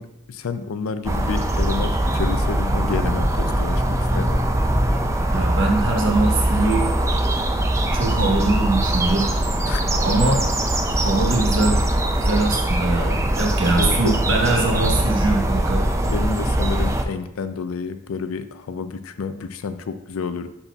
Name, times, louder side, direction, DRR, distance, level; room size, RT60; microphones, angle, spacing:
voice 1, 0.0-4.4 9.7-9.9 13.8-14.2 16.0-20.5, left 5 dB, 85° left, 11 dB, 0.4 m, -29 dB
sound 1, 1.0-17.0, right 1 dB, 15° right, 0.4 m, -21 dB
voice 2, 5.3-6.9 7.7-9.3 9.9-10.4 10.9-11.8 12.1-16.1, right 2 dB, 65° right, 1 dB, 1.1 m, -22 dB
10.5 x 4.1 x 2.4 m, 0.89 s
head